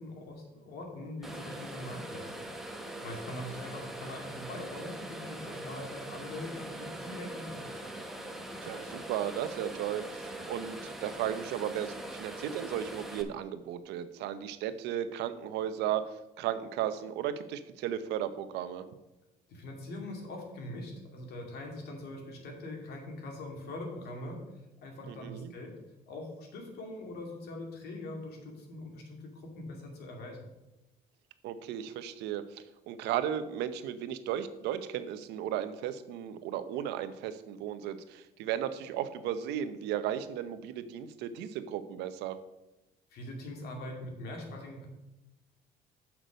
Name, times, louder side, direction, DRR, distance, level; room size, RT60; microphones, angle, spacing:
voice 1, 0.0-2.5 3.0-7.7 19.5-24.4 24.8-25.7 26.1-30.4 43.1-44.9, left 1 dB, 75° left, 1 dB, 2.5 m, -42 dB
sound 1, 1.2-13.2, right 1 dB, ahead, 1.0 m, -42 dB
voice 2, 8.6-18.8 25.1-25.5 31.4-42.4, right 10 dB, 90° right, 11 dB, 0.7 m, -35 dB
8.1 x 6.0 x 5.1 m, 0.99 s
cardioid pair, 110°, 17 cm